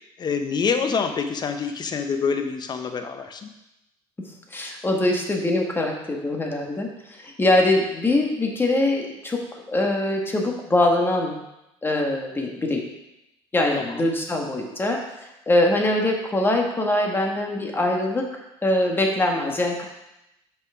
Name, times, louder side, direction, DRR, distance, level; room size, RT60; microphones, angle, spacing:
voice 1, 0.0-3.5 13.7-14.1, left 5 dB, 40° left, 7 dB, 0.8 m, -26 dB
voice 2, 4.2-9.4 9.7-11.4 11.8-12.9 13.5-15.0 15.5-18.3 18.6-19.8, left 1 dB, 20° left, 1 dB, 1.5 m, -23 dB
5.9 x 5.8 x 5.0 m, 0.90 s
supercardioid pair, 95°, 12 cm